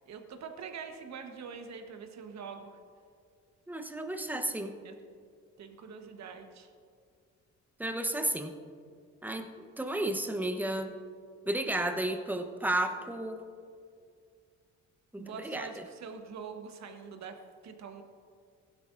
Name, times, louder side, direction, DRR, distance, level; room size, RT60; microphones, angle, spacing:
voice 1, 0.1-2.8 4.8-4.9 5.6-6.7 15.2-18.0, right 6 dB, 65° right, 6 dB, 1.2 m, -44 dB
voice 2, 3.7-4.7 7.8-8.5 9.2-10.9 11.5-13.4 15.1-15.8, right 1 dB, 5° right, 5 dB, 1.0 m, -33 dB
16.0 x 11.5 x 2.6 m, 2.2 s
cardioid pair, 90°, 30 cm